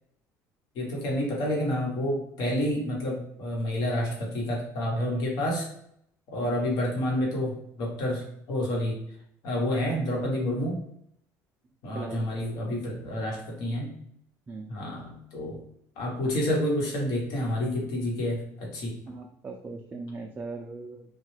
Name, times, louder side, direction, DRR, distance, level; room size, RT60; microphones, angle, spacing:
voice 1, 0.7-5.6 6.3-9.0 9.4-10.8 11.8-13.9 14.7-15.6 16.0-18.9, left 1 dB, 70° left, -2 dB, 1.1 m, -29 dB
voice 2, 11.9-12.8 14.5-14.7 19.1-21.0, right 3 dB, 25° right, 1 dB, 0.3 m, -39 dB
3.2 x 2.2 x 3.1 m, 0.71 s
cardioid pair, 130°, 7 cm